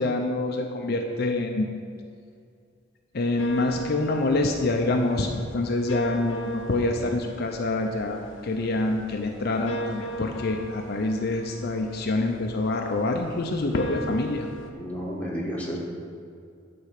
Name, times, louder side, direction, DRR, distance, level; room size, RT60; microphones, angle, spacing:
voice 1, 0.0-1.7 3.1-14.5, left 2 dB, 55° left, 3 dB, 0.6 m, -26 dB
sound 1, 3.4-14.7, right 1 dB, 85° left, 0.9 m, -38 dB
voice 2, 14.7-15.8, equal, 10° left, -4 dB, 1.5 m, -31 dB
9.9 x 4.3 x 6.5 m, 2.3 s
head